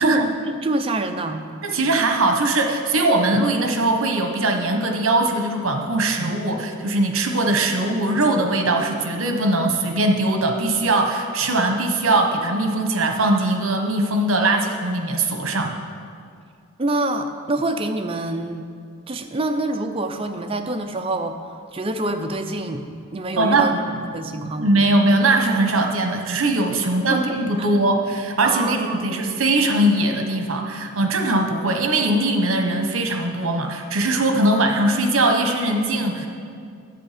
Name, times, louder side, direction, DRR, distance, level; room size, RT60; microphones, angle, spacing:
voice 1, 0.0-1.4 16.8-18.7 19.1-24.8 27.1-27.2 27.6-27.7 28.4-29.3, right 2 dB, 25° right, 6 dB, 0.5 m, -26 dB
voice 2, 1.6-15.8 23.4-23.8 24.6-36.3, right 2 dB, 70° right, 4 dB, 1.1 m, -20 dB
10.5 x 8.2 x 5.0 m, 2.2 s
head